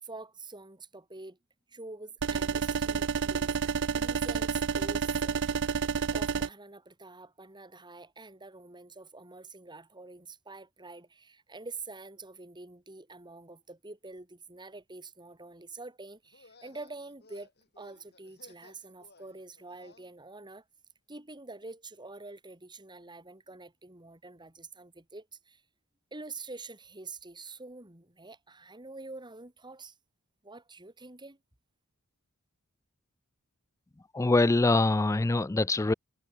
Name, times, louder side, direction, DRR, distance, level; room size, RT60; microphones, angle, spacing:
voice 1, 0.0-1.4 1.7-3.6 3.9-5.4 6.1-17.5 17.8-20.6 21.1-25.6 26.1-30.0 30.4-31.4, right 3 dB, 20° right, 4.0 m, -46 dB
sound 1, 2.2-6.5, right 6 dB, 55° right, 0.5 m, -29 dB
sound 2, 16.2-20.1, left 3 dB, 50° left, 6.8 m, -59 dB
voice 2, 34.1-35.9, left 2 dB, 15° left, 0.3 m, -24 dB
head